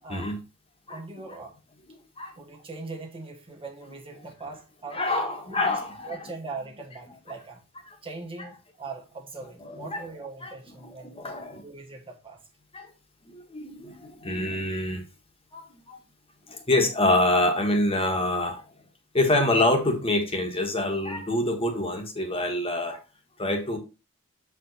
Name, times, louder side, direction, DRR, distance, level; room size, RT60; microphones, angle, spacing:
voice 1, 0.9-1.5 2.4-5.0 5.5-7.6 8.0-11.2 11.6-12.4, right 3 dB, 25° right, 1.3 m, -41 dB
voice 2, 4.9-6.2 7.9-8.0 9.6-10.0 10.4-11.6 12.7-12.9 13.2-15.0 15.5-16.0 16.5-18.6 19.1-23.0 23.4-23.8, left 1 dB, 25° left, 1.4 m, -26 dB
7.4 x 4.9 x 4.0 m
head